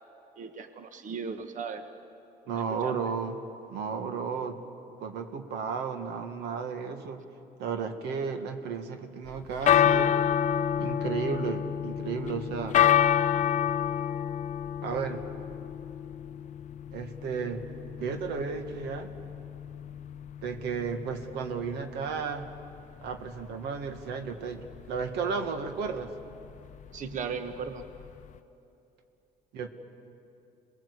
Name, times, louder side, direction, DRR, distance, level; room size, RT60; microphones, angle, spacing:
voice 1, 0.4-1.9 2.5-3.0 26.9-27.9, right 6 dB, 50° right, 8 dB, 1.3 m, -37 dB
voice 2, 2.5-3.4 3.7-4.6 5.0-7.2 7.6-10.1 10.8-12.8 14.8-15.2 16.9-17.6 18.0-19.1 20.4-22.5 23.0-26.1 29.5-29.7, right 5 dB, 85° right, 6 dB, 1.7 m, -33 dB
sound 1, 9.3-28.4, left 9 dB, 45° left, 0.6 m, -29 dB
27.0 x 20.5 x 8.2 m, 2.8 s
cardioid pair, 110°, 17 cm